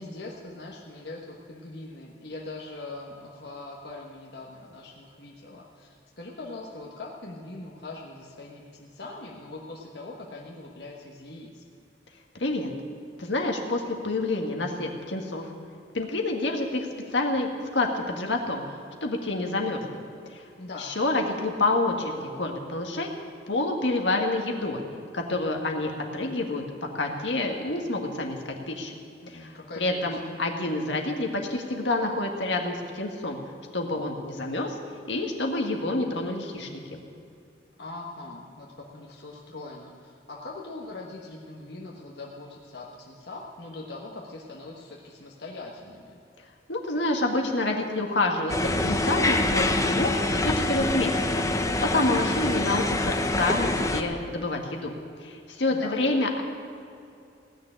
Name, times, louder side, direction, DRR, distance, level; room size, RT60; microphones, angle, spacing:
voice 1, 0.0-11.7 20.6-20.9 29.2-30.2 37.8-46.2 55.7-56.0, left 2 dB, 60° left, -2 dB, 1.3 m, -41 dB
voice 2, 13.2-15.5 15.9-16.9 17.1-18.6 19.0-19.8 20.3-20.4 20.8-23.1 23.5-24.8 25.1-26.6 26.9-28.4 28.7-28.9 29.3-33.4 33.7-34.8 35.1-37.0 46.7-51.2 51.8-54.9 55.2-56.4, left 2 dB, 80° left, 2 dB, 1.7 m, -28 dB
sound 1, 48.5-54.0, left 2 dB, 15° left, 0.7 m, -25 dB
17.0 x 6.7 x 9.9 m, 2.5 s
head